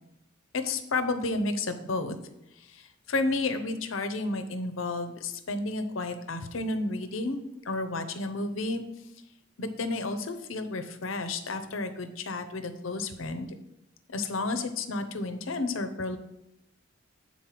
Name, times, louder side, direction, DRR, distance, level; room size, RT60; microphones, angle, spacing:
voice 1, 0.5-2.2 2.6-7.4 7.6-8.8 9.6-13.5 14.1-16.2, left 2 dB, 85° left, 8 dB, 0.8 m, -31 dB
7.5 x 4.3 x 5.8 m, 0.85 s
head